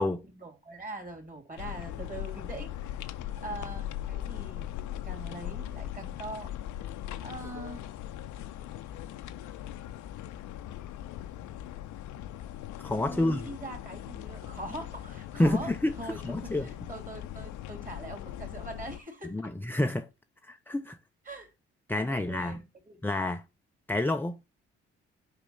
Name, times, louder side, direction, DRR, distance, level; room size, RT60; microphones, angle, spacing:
voice 1, 0.2-3.1 3.4-4.7 5.0-6.5 7.2-7.9 13.0-16.2 16.5-19.5 21.2-21.5 21.9-23.0, right 2 dB, 25° right, 2.9 m, -42 dB
sound 1, 1.6-19.0, left 12 dB, 65° left, 0.7 m, -40 dB
voice 2, 12.8-13.4 15.4-16.0 16.2-16.7 19.3-20.1 20.4-21.0 21.9-22.6 23.0-23.4 23.9-24.4, left 1 dB, 5° left, 0.5 m, -28 dB
4.9 x 4.8 x 5.5 m
hypercardioid pair, 45°, 32 cm